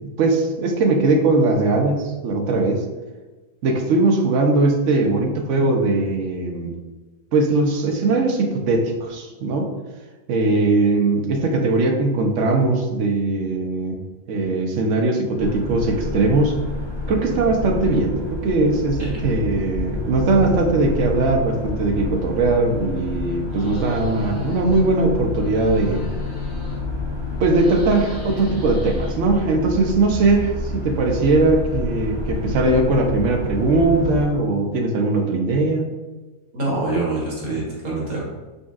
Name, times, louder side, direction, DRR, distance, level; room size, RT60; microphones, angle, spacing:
voice 1, 0.0-2.9 3.6-6.7 7.3-9.7 10.3-14.0 14.3-16.6 17.1-26.0 27.4-35.9, right 3 dB, 65° right, 3 dB, 0.9 m, -20 dB
sound 1, 15.4-34.3, left 3 dB, 35° left, 0.5 m, -29 dB
sound 2, 23.5-24.9 25.2-27.0 27.3-29.6, left 1 dB, 65° left, 2.1 m, -42 dB
voice 2, 36.5-38.2, right 2 dB, 80° right, -5 dB, 1.8 m, -25 dB
5.2 x 3.6 x 2.4 m, 1.2 s
omnidirectional pair, 1.5 m